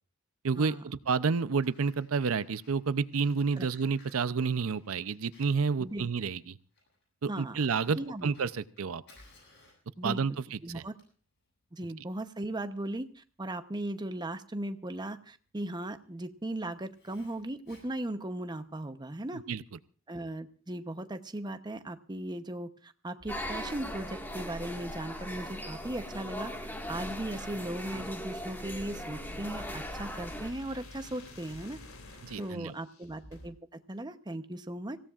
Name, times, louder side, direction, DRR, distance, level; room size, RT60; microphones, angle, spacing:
voice 1, 0.4-6.6 7.2-9.0 10.0-10.8 19.3-19.6 32.2-32.7, right 5 dB, 75° right, 15 dB, 0.6 m, -30 dB
Fire, 1.1-18.8, left 2 dB, 55° left, 8.0 m, -63 dB
voice 2, 7.3-7.6 7.9-8.3 10.0-10.9 11.7-19.4 20.1-26.5 26.9-31.8 32.4-33.5 33.9-35.0, right 1 dB, 20° right, 9 dB, 0.8 m, -37 dB
sound 1, 23.2-33.5, left 1 dB, 75° left, 2.7 m, -51 dB
sound 2, 23.3-30.5, equal, 10° left, 1.8 m, -39 dB
25.0 x 16.0 x 2.4 m, 0.40 s
head